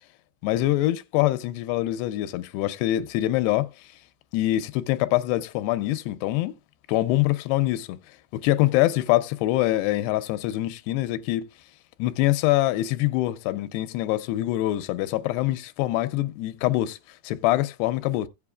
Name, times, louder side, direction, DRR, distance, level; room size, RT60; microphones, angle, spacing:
voice 1, 0.4-3.7 4.3-6.5 6.9-8.0 8.3-11.5 12.0-17.0 17.2-18.3, left 16 dB, 85° left, 2.8 m, -24 dB
16.5 x 7.7 x 2.3 m
omnidirectional pair, 4.7 m